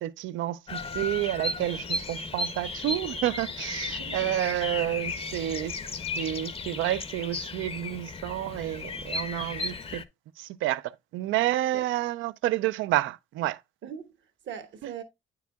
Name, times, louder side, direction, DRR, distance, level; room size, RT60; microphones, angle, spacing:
voice 1, 0.0-5.8 6.2-10.0 10.4-10.8 11.1-13.6, right 14 dB, 85° right, 0.4 m, -29 dB
Bird vocalization bird call bird song, 0.7-10.0, left 3 dB, 30° left, 0.6 m, -35 dB
voice 2, 3.9-4.4 11.7-11.9 13.8-15.0, right 7 dB, 70° right, 1.2 m, -41 dB
9.2 x 4.8 x 2.2 m
cardioid pair, 90°, 20 cm